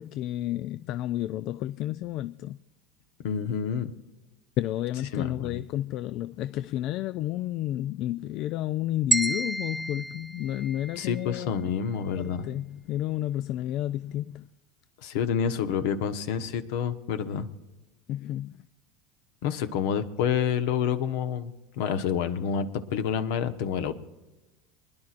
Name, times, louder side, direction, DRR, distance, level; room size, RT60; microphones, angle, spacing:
voice 1, 0.0-2.6 4.6-11.7 12.2-14.5 18.1-18.6, left 13 dB, 55° left, 0.3 m, -31 dB
voice 2, 3.2-3.9 5.1-5.6 11.0-12.5 15.0-17.5 19.4-23.9, left 7 dB, 75° left, 1.0 m, -28 dB
sound 1, 9.1-11.3, right 2 dB, 10° right, 0.8 m, -30 dB
25.0 x 10.5 x 2.5 m
supercardioid pair, 105°, 0 cm